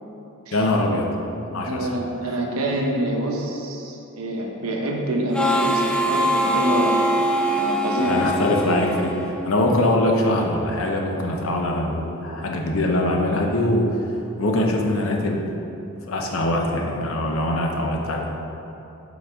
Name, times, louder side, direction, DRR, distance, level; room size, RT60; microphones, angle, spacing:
voice 1, 0.5-1.1 1.5-1.9 8.1-13.9 14.4-15.4 16.1-18.3, left 1 dB, 75° left, 1 dB, 0.8 m, -22 dB
voice 2, 1.7-7.0 7.6-8.3, right 1 dB, 90° right, 0 dB, 1.0 m, -26 dB
Harmonica, 5.3-9.8, equal, 5° left, 0.4 m, -23 dB
7.1 x 4.1 x 4.9 m, 2.9 s
head